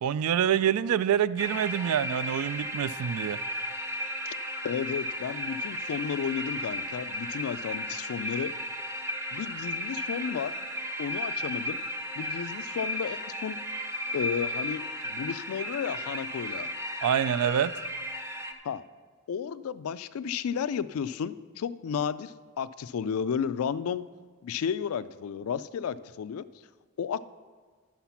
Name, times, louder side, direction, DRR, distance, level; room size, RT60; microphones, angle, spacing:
voice 1, 0.0-3.4 17.0-17.7, right 9 dB, 80° right, 17 dB, 0.3 m, -26 dB
sound 1, 1.4-18.5, equal, 10° right, 0.5 m, -35 dB
voice 2, 4.6-8.5 9.3-10.5 11.0-11.8 12.2-13.6 14.1-16.7 18.6-18.8 19.3-24.1 24.4-26.4 27.0-27.2, left 7 dB, 70° left, 16 dB, 0.3 m, -32 dB
11.0 x 5.8 x 5.8 m, 1.5 s
head